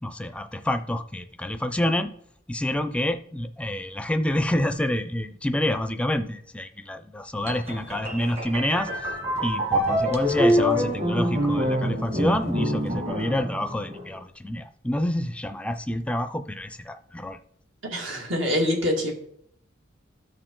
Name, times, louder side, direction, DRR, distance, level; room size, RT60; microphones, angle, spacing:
voice 1, 0.0-2.1 2.5-9.1 9.4-17.4, left 1 dB, 5° left, 9 dB, 0.4 m, -28 dB
sound 1, 7.5-14.2, equal, 35° right, 1.4 m, -25 dB
voice 2, 17.9-19.1, left 1 dB, 75° right, 0 dB, 2.1 m, -25 dB
13.0 x 4.8 x 3.8 m, 0.68 s
head